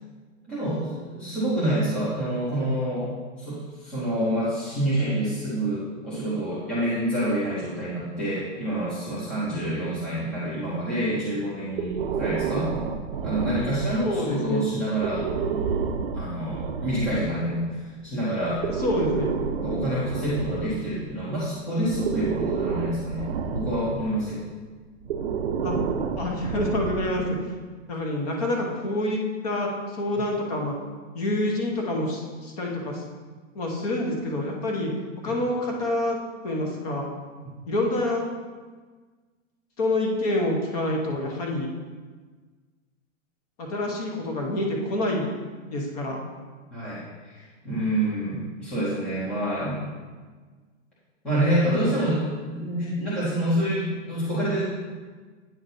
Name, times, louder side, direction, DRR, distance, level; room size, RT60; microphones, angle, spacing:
voice 1, 0.5-3.1 3.4-12.7 13.2-15.3 16.1-18.7 19.6-24.4 46.7-49.9 51.2-54.6, right 1 dB, 5° left, -11 dB, 0.6 m, -27 dB
Breathing, 11.8-14.2 14.9-17.3 18.4-21.2 21.8-24.1 25.0-27.3, right 6 dB, 50° right, 0.6 m, -30 dB
voice 2, 13.8-14.6 18.7-19.3 25.6-25.8 26.2-27.3 27.9-30.7 31.1-33.0 33.5-34.9 35.2-36.2 36.4-37.1 37.7-38.3 39.8-41.7 43.6-45.3 45.7-46.2, left 1 dB, 30° left, 0 dB, 0.9 m, -27 dB
8.9 x 5.8 x 2.7 m, 1.4 s
hypercardioid pair, 170°, 39 cm